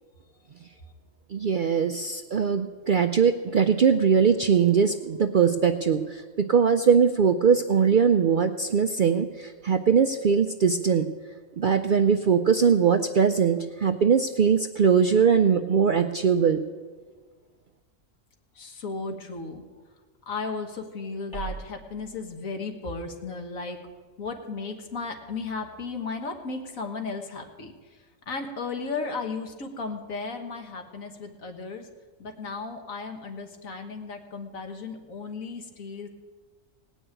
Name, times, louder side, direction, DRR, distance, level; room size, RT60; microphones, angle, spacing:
voice 1, 1.3-11.0 11.6-16.6, right 6 dB, 65° right, 8 dB, 0.5 m, -21 dB
voice 2, 18.6-19.6 20.3-23.8 24.2-27.7 28.3-31.9 32.2-36.1, left 4 dB, 80° left, 4 dB, 1.8 m, -35 dB
sound 1, 21.3-26.2, right 6 dB, 55° left, 4.3 m, -46 dB
18.0 x 6.3 x 9.1 m, 1.4 s
omnidirectional pair, 1.4 m